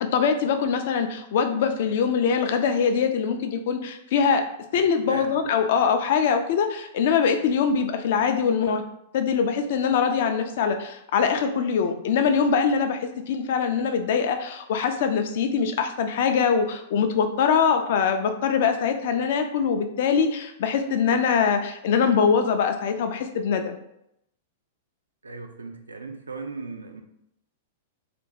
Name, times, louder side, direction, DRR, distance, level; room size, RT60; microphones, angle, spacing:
voice 1, 0.0-4.4 4.7-8.8 9.1-23.8, left 6 dB, 55° left, 6 dB, 0.3 m, -23 dB
voice 2, 4.7-5.4 25.2-27.0, right 3 dB, 75° right, 5 dB, 0.3 m, -37 dB
2.5 x 2.1 x 2.8 m, 0.78 s
figure-of-eight pair, 100°, 0 cm